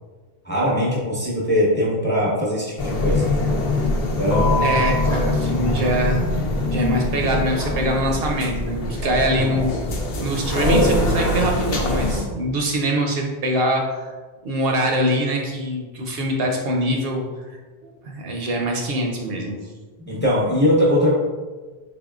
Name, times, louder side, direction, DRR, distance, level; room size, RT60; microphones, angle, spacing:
voice 1, 0.4-3.3 4.2-4.8 20.0-21.2, equal, 10° left, -5 dB, 0.8 m, -20 dB
sound 1, 2.8-12.3, left 1 dB, 65° left, 0.8 m, -22 dB
voice 2, 4.6-6.2 6.7-9.7 10.2-14.2 14.4-19.6, right 1 dB, 70° right, 1 dB, 0.8 m, -23 dB
3.9 x 3.6 x 2.4 m, 1.3 s
omnidirectional pair, 1.1 m